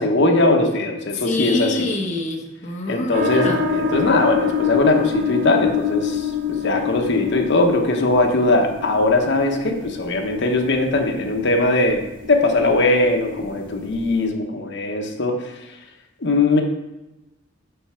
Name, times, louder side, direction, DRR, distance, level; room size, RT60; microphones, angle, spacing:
voice 1, 0.0-1.9 2.9-15.5 16.2-16.6, left 2 dB, 65° left, 2 dB, 0.9 m, -20 dB
voice 2, 1.1-3.6, left 1 dB, 35° left, 1 dB, 1.0 m, -26 dB
sound 1, 3.1-14.2, left 6 dB, 45° right, 1.1 m, -27 dB
5.3 x 4.4 x 5.7 m, 0.99 s
head